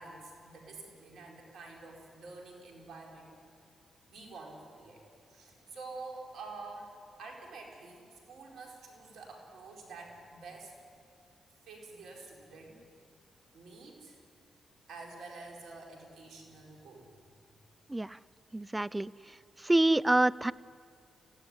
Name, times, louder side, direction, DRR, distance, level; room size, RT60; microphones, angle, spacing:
voice 1, 0.0-3.3 4.1-5.0 5.3-10.7 11.7-12.8 13.5-14.2 14.9-17.1, right 3 dB, 75° right, 0 dB, 4.9 m, -48 dB
voice 2, 18.5-19.1 19.6-20.5, right 2 dB, 20° right, 19 dB, 0.6 m, -26 dB
23.5 x 17.0 x 9.8 m, 2.3 s
hypercardioid pair, 45°, 0 cm